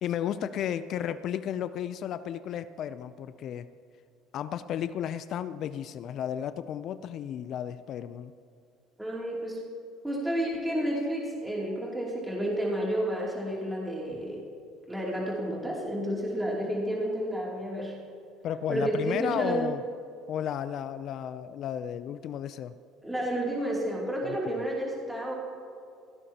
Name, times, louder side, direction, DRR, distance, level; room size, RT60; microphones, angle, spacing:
voice 1, 0.0-3.7 4.3-8.3 18.4-19.8 20.3-22.7 24.2-24.6, left 9 dB, 55° left, 13 dB, 0.5 m, -33 dB
voice 2, 9.0-9.6 10.0-14.4 14.9-17.9 18.7-19.7 23.0-25.3, right 1 dB, 5° right, -4 dB, 2.8 m, -31 dB
17.0 x 16.0 x 2.9 m, 2.4 s
supercardioid pair, 105°, 0 cm